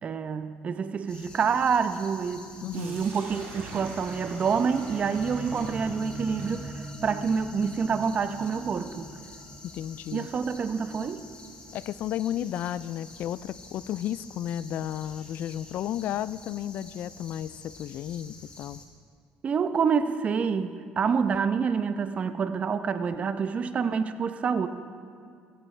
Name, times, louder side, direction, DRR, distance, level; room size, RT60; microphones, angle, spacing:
voice 1, 0.0-2.5 2.7-9.1 10.1-11.2 19.4-24.7, right 6 dB, 40° right, 10 dB, 0.8 m, -27 dB
sound 1, 1.1-18.8, left 3 dB, 30° left, 2.6 m, -49 dB
voice 2, 2.6-3.0 9.7-10.3 11.7-18.8, left 11 dB, 65° left, 18 dB, 0.3 m, -33 dB
Sink (filling or washing), 2.7-10.6, right 3 dB, 75° right, 3.3 m, -46 dB
sound 2, 3.4-11.5, equal, ahead, 1.1 m, -44 dB
15.0 x 15.0 x 3.3 m, 2.2 s
supercardioid pair, 90°, 3 cm